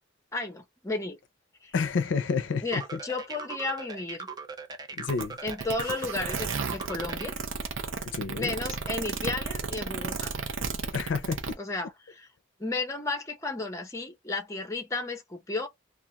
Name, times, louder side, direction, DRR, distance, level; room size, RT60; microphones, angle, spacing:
voice 1, 0.3-1.2 2.6-4.3 5.4-7.3 8.3-10.3 11.6-11.9 12.2-12.3 12.6-15.7, left 3 dB, 15° left, 0.7 m, -33 dB
voice 2, 1.7-3.0 4.9-5.4 8.0-8.5 10.9-11.6, left 5 dB, 70° left, 0.4 m, -30 dB
sound 1, 2.7-7.3, right 4 dB, 20° right, 0.4 m, -40 dB
sound 2, 5.1-11.5, right 5 dB, 85° right, 0.6 m, -33 dB
2.4 x 2.3 x 2.8 m
head